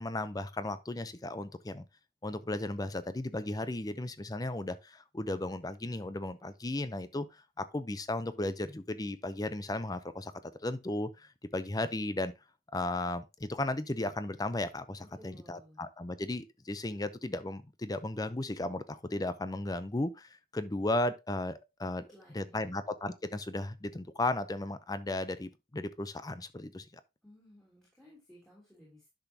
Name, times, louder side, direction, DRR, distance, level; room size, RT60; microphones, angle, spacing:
voice 1, 0.0-1.9 2.2-7.3 7.6-10.3 10.6-12.3 12.7-22.0 22.3-26.9, left 2 dB, 20° left, 0.6 m, -35 dB
voice 2, 15.2-15.8 21.9-22.8 27.2-29.1, equal, ahead, 3.1 m, -57 dB
10.5 x 6.1 x 2.8 m
head